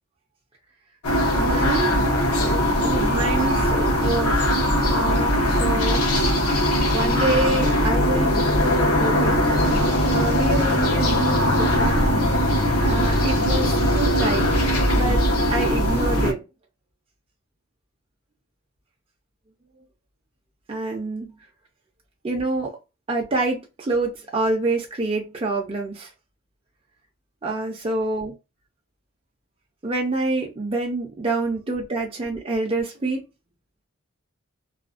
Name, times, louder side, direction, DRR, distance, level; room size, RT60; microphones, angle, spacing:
sound 1, 1.0-16.3, equal, 80° left, 0.8 m, -20 dB
voice 1, 1.4-1.9 2.4-4.5 4.9-6.1 6.5-9.5 10.1-12.0 12.8-14.5 14.9-15.2 15.5-16.4 20.7-21.3 22.2-22.8 23.1-26.1 27.4-28.3 29.8-33.2, right 2 dB, 25° right, 0.4 m, -27 dB
2.4 x 2.1 x 2.4 m
head